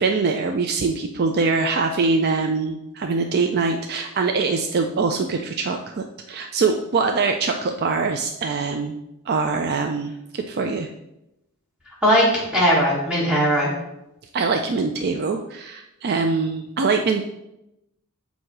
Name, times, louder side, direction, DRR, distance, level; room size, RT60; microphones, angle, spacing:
voice 1, 0.0-9.0 9.3-10.9 14.3-17.2, right 4 dB, 45° right, 4 dB, 0.4 m, -23 dB
voice 2, 12.0-13.7, equal, 5° right, -6 dB, 1.4 m, -19 dB
7.6 x 2.7 x 6.0 m, 0.88 s
head